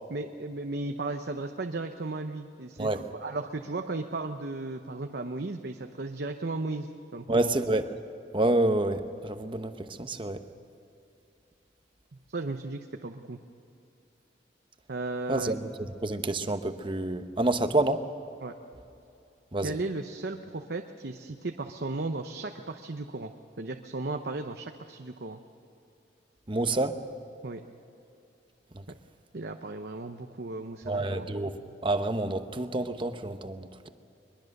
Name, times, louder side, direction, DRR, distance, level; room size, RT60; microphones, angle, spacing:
voice 1, 0.1-7.5 12.3-13.4 14.9-15.5 18.4-18.5 19.6-25.4 27.4-27.6 29.3-31.3, right 2 dB, 65° right, 5 dB, 0.9 m, -35 dB
voice 2, 7.3-7.8 8.3-10.4 15.3-15.7 16.0-18.0 19.5-19.7 26.5-27.0 30.9-31.5 31.8-33.9, right 2 dB, 30° right, 9 dB, 0.9 m, -28 dB
22.5 x 22.0 x 6.6 m, 2.7 s
head